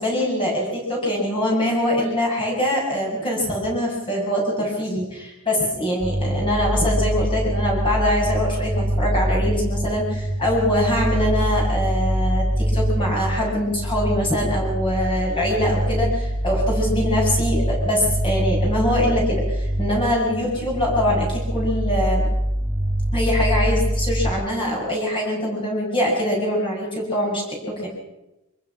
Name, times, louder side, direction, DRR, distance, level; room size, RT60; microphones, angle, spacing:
voice 1, 0.0-22.3 23.1-27.9, left 1 dB, 25° left, -3 dB, 7.6 m, -23 dB
sound 1, 6.0-24.3, right 1 dB, 5° left, 5.1 m, -24 dB
25.0 x 22.5 x 6.0 m, 0.92 s
head